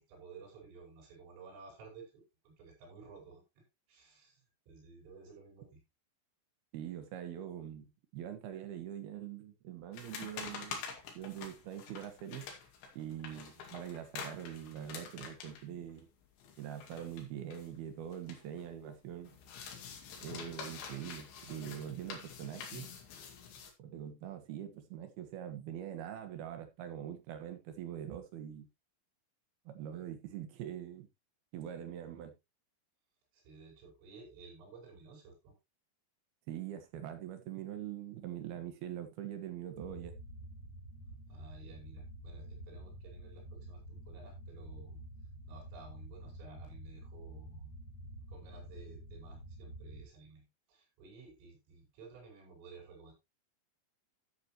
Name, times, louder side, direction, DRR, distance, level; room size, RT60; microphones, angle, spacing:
voice 1, 0.0-3.4 3.9-4.4 4.7-5.8 13.3-13.4 33.3-35.6 41.3-45.0 45.5-47.7 48.3-53.1, right 4 dB, 85° right, 7.8 m, -54 dB
voice 2, 6.7-7.9 8.1-10.8 11.1-12.5 13.0-16.1 16.6-19.3 20.2-22.9 23.8-28.7 29.7-31.1 31.5-32.3 36.5-40.1, right 10 dB, 65° right, 2.8 m, -43 dB
sound 1, 9.9-18.7 19.0-23.7, left 6 dB, 70° left, 4.5 m, -47 dB
sound 2, 39.8-50.0, right 1 dB, 45° left, 2.6 m, -49 dB
13.5 x 8.4 x 3.0 m
omnidirectional pair, 5.7 m